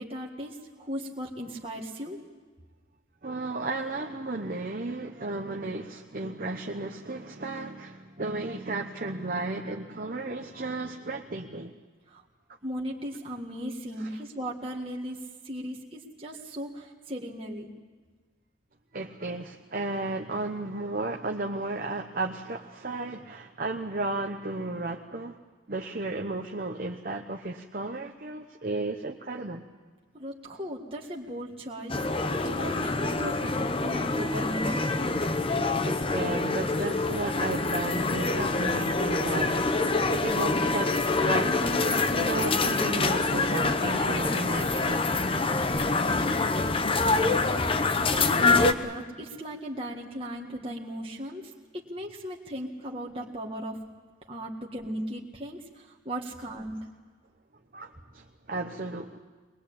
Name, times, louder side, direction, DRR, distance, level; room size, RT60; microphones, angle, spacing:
voice 1, 0.0-2.2 12.1-12.2 12.6-17.7 30.1-34.9 48.1-53.8 54.3-56.8, equal, 25° right, -1 dB, 1.8 m, -37 dB
voice 2, 3.2-11.7 14.0-14.2 18.9-25.4 25.7-29.6 35.8-45.1 46.2-46.3 57.7-59.2, right 2 dB, 45° right, 3 dB, 1.0 m, -34 dB
sound 1, 31.9-48.7, left 3 dB, 25° left, 0.8 m, -26 dB
22.5 x 21.0 x 8.7 m, 1.4 s
head